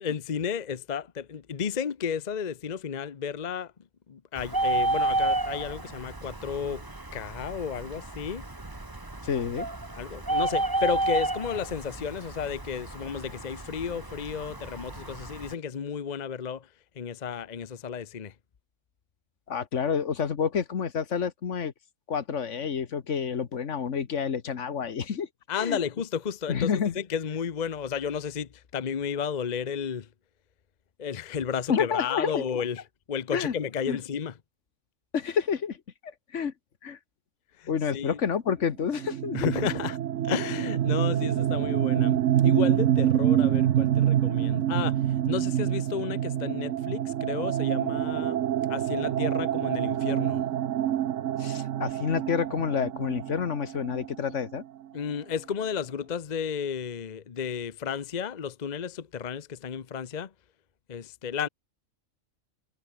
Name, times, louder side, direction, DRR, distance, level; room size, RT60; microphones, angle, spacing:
voice 1, 0.0-3.7 4.1-6.8 7.1-8.4 9.3-9.4 9.9-16.7 17.0-18.3 25.5-30.1 31.0-32.8 33.1-34.3 37.6-38.2 39.3-40.0 40.2-48.4 48.7-50.4 54.9-60.3 60.9-61.5, left 7 dB, 40° left, 0.8 m, -32 dB
Bird, 4.4-15.5, right 2 dB, 15° right, 1.6 m, -31 dB
voice 2, 9.2-9.7 19.5-21.7 22.1-25.3 25.5-25.8 26.5-26.9 31.7-32.4 33.3-33.5 33.9-34.0 35.1-35.8 36.0-36.5 36.8-37.0 37.7-39.5 51.4-54.6, left 7 dB, 65° left, 1.6 m, -29 dB
sound 1, 39.0-54.6, right 11 dB, 75° right, 1.1 m, -26 dB
omnidirectional pair, 1.3 m